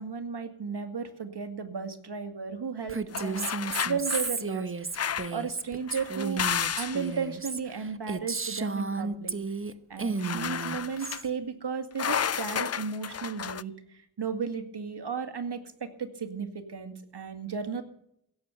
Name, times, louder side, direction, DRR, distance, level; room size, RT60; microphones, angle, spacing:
voice 1, 0.0-3.5 3.8-4.7 4.9-6.4 6.8-9.4 9.9-17.8, right 5 dB, 55° right, 7 dB, 2.2 m, -34 dB
Female speech woman speaking, 2.9-9.7 10.0-11.3, right 4 dB, 25° right, 1.0 m, -33 dB
sound 1, 3.1-4.3 4.9-5.4 5.9-7.1 10.2-11.2 12.0-13.6, left 8 dB, 35° left, 0.4 m, -32 dB
17.0 x 7.3 x 8.1 m, 0.72 s
cardioid pair, 45°, 48 cm